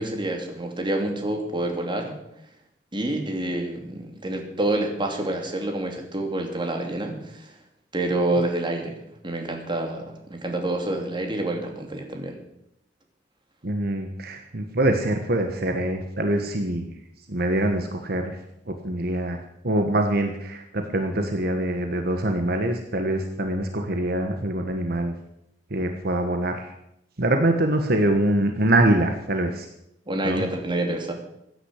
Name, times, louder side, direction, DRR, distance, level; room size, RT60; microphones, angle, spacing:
voice 1, 0.0-2.2 2.9-7.5 7.9-12.4 30.1-31.1, right 1 dB, 25° right, 3 dB, 2.7 m, -28 dB
voice 2, 13.6-16.9 17.3-18.4 18.7-19.4 19.6-25.1 25.7-26.7 27.2-29.7 30.2-30.4, right 1 dB, 60° right, 5 dB, 1.4 m, -24 dB
15.5 x 10.0 x 8.2 m, 0.80 s
head